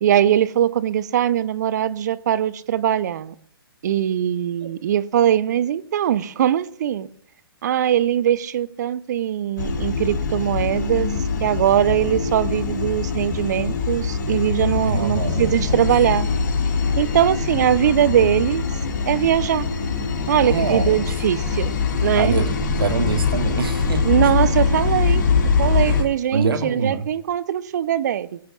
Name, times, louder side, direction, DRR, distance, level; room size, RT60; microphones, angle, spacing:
voice 1, 0.0-3.3 3.8-7.1 7.6-11.1 11.4-16.3 17.0-18.6 19.1-19.7 20.3-21.7 22.0-22.4 24.0-25.2 25.6-28.4, right 10 dB, 45° right, 0.7 m, -21 dB
sound 1, 9.6-26.0, left 5 dB, 50° left, 2.9 m, -23 dB
voice 2, 14.8-15.9 20.4-21.1 22.2-24.5 25.9-26.1 26.3-27.1, right 5 dB, 65° right, 1.7 m, -25 dB
23.0 x 15.5 x 2.4 m
figure-of-eight pair, 125°, 13 cm